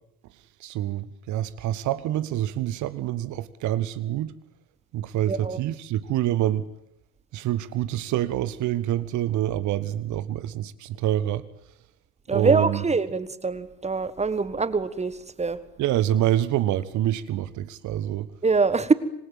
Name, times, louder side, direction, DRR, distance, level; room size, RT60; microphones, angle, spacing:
voice 1, 0.6-4.4 4.9-6.7 7.3-11.4 12.3-12.8 15.8-18.3, right 12 dB, 40° right, 1.4 m, -26 dB
voice 2, 5.3-5.6 12.3-15.6 18.4-18.9, right 4 dB, 15° right, 1.5 m, -24 dB
26.5 x 21.0 x 9.2 m
figure-of-eight pair, 65°, 45 cm